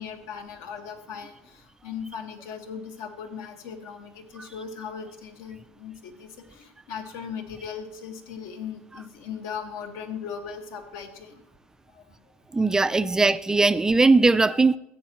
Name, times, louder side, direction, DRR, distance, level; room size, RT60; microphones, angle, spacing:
voice 1, 0.0-11.4 11.9-12.2 12.5-12.6, left 7 dB, 65° left, 1.7 m, -38 dB
voice 2, 12.5-14.8, right 3 dB, 10° right, 0.4 m, -19 dB
14.5 x 8.6 x 3.1 m
supercardioid pair, 120°, 6 cm